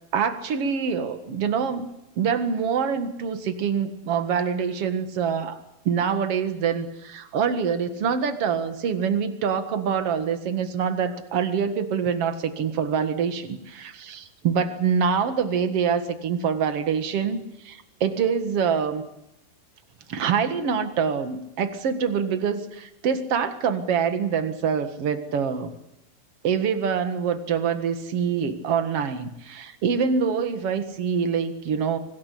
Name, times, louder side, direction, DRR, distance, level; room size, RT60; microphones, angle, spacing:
voice 1, 0.1-1.9 2.2-19.0 20.1-25.7 26.4-32.0, right 6 dB, 50° right, 10 dB, 2.0 m, -25 dB
25.5 x 19.0 x 8.4 m, 0.89 s
omnidirectional pair, 4.7 m